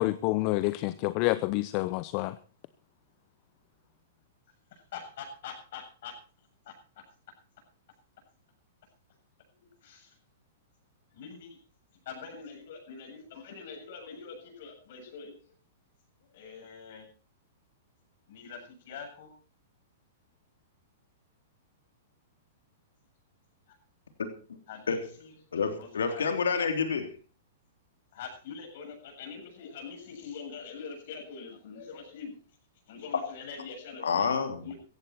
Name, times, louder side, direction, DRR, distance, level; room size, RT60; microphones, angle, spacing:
voice 1, 0.0-2.3, left 19 dB, 45° left, 16 dB, 0.8 m, -28 dB
voice 2, 4.7-6.1 6.7-6.8 9.5-10.2 11.1-11.6 12.1-15.3 16.2-17.1 18.3-19.3 23.7-23.8 24.7-26.3 28.1-32.4 32.9-34.3 34.6-34.8, left 6 dB, 60° left, 3 dB, 7.6 m, -44 dB
voice 3, 25.5-27.1 34.0-34.6, left 5 dB, 80° left, 7 dB, 3.4 m, -28 dB
16.5 x 15.5 x 4.4 m, 0.37 s
hypercardioid pair, 115°, 0 cm